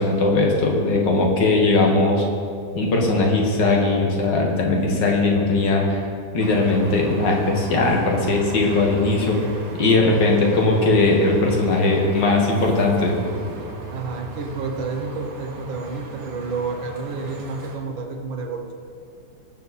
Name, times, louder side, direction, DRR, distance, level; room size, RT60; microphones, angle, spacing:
voice 1, 0.0-2.2 2.8-6.0 6.3-9.4 9.8-13.2, left 2 dB, 70° left, 0 dB, 2.1 m, -19 dB
sound 1, 6.4-17.8, right 2 dB, 65° right, 1.9 m, -37 dB
voice 2, 13.9-18.7, right 4 dB, 85° right, 3 dB, 1.8 m, -30 dB
18.0 x 7.1 x 4.2 m, 2.4 s
omnidirectional pair, 2.0 m